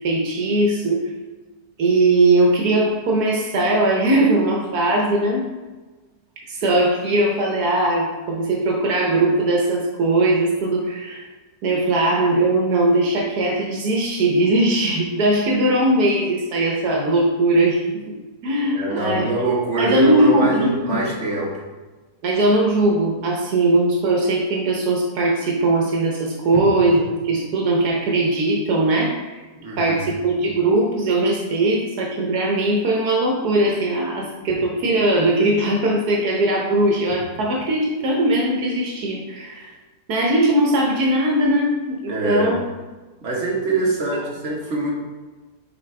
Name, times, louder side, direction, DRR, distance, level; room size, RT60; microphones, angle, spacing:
voice 1, 0.0-1.1 1.8-5.5 6.5-11.2 11.6-18.1 18.4-19.3 19.8-21.1 22.2-29.4 29.8-39.7 40.1-42.7, right 1 dB, 80° right, -1 dB, 1.5 m, -20 dB
voice 2, 18.7-21.6 29.6-30.0 42.1-42.5 43.2-44.9, right 3 dB, 50° right, -3 dB, 1.7 m, -23 dB
7.0 x 4.7 x 3.3 m, 1.3 s
omnidirectional pair, 1.6 m